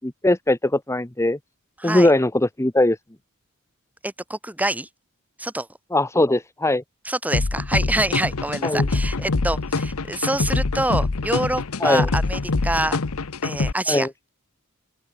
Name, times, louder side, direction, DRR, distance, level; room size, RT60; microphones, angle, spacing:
voice 1, 0.0-1.4 1.8-3.0 5.9-6.8 8.6-8.8 11.8-12.1 13.9-14.1, left 1 dB, 15° left, 1.0 m, -20 dB
voice 2, 1.8-2.1 4.0-4.9 5.4-5.7 7.0-13.0 13.4-14.1, right 1 dB, 5° right, 3.0 m, -26 dB
sound 1, 7.3-13.7, left 3 dB, 70° left, 0.9 m, -24 dB
open air
head